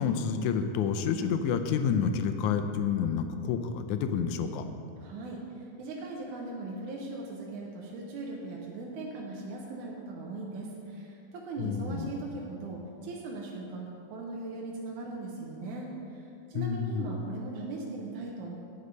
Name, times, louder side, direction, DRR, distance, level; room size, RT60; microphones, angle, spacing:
voice 1, 0.0-4.7 11.6-12.1 16.5-17.1, left 7 dB, 85° left, 8 dB, 2.0 m, -29 dB
voice 2, 5.0-18.6, right 2 dB, 85° right, -1 dB, 2.3 m, -39 dB
9.5 x 6.7 x 5.1 m, 2.7 s
omnidirectional pair, 3.4 m